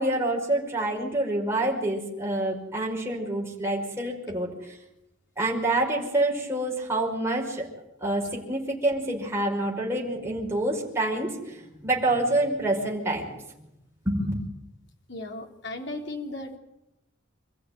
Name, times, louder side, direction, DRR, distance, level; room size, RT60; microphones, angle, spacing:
voice 1, 0.0-4.8 5.4-7.7 8.0-13.3 14.1-14.3, right 1 dB, 15° right, -3 dB, 5.5 m, -27 dB
voice 2, 15.1-16.6, left 2 dB, 60° left, 2 dB, 3.7 m, -36 dB
26.5 x 15.0 x 9.3 m, 0.88 s
head